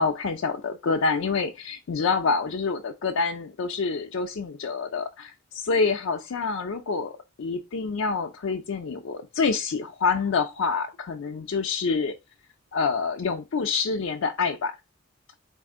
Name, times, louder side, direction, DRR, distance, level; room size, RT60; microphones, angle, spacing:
voice 1, 0.0-12.1 12.7-14.7, left 4 dB, 85° left, 0.4 m, -27 dB
4.1 x 2.6 x 3.6 m
head